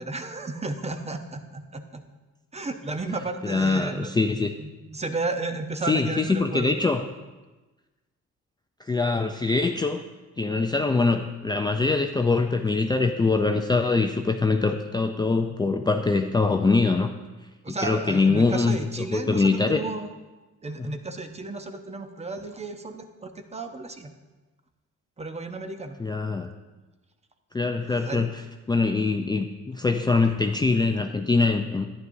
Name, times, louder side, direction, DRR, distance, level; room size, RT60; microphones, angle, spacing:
voice 1, 0.0-2.0 2.5-4.1 4.6-6.9 17.6-20.1 20.6-24.1 25.2-26.0 28.0-28.3, right 3 dB, 20° right, 7 dB, 0.8 m, -33 dB
voice 2, 3.4-4.5 5.9-7.0 8.8-10.0 10.4-17.1 17.7-18.8 19.1-19.8 20.8-20.9 26.0-26.5 27.5-28.4 28.7-31.9, left 3 dB, 15° left, 4 dB, 0.4 m, -23 dB
11.0 x 9.5 x 2.7 m, 1.2 s
cardioid pair, 90°, 30 cm